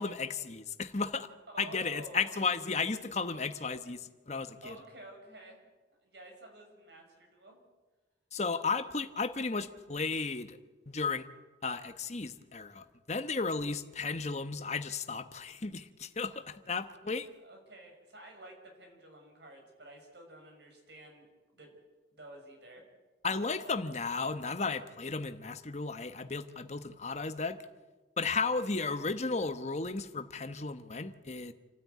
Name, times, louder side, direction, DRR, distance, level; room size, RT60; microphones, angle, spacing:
voice 1, 0.0-1.3 1.6-4.8 8.3-10.6 10.9-11.3 11.6-17.3 23.2-27.6 28.2-31.5, left 4 dB, 40° left, 9 dB, 1.1 m, -34 dB
voice 2, 1.5-2.4 4.6-5.6 6.0-7.6 17.4-21.7 22.1-22.8 23.3-23.7, right 1 dB, 65° right, 3 dB, 6.1 m, -51 dB
28.0 x 13.0 x 9.5 m, 1.3 s
head